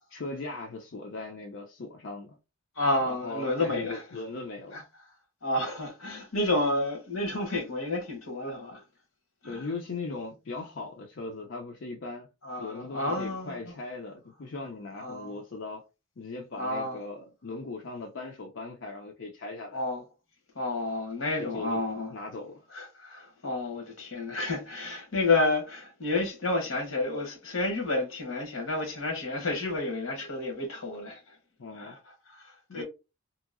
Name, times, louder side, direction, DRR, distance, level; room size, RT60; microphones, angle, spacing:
voice 1, 0.1-2.4 3.0-4.8 9.4-12.3 12.6-15.9 16.2-19.8 21.4-21.8 22.1-22.6 31.6-32.0 32.7-32.8, left 3 dB, 60° left, 0.5 m, -39 dB
voice 2, 2.8-4.0 4.7-4.8 5.4-8.8 9.4-9.6 12.4-13.7 15.0-15.4 16.6-17.0 19.7-20.0 20.5-22.1 22.7-31.4 31.8-32.0 32.3-32.8, left 2 dB, 80° left, 1.1 m, -30 dB
2.8 x 2.6 x 2.4 m
head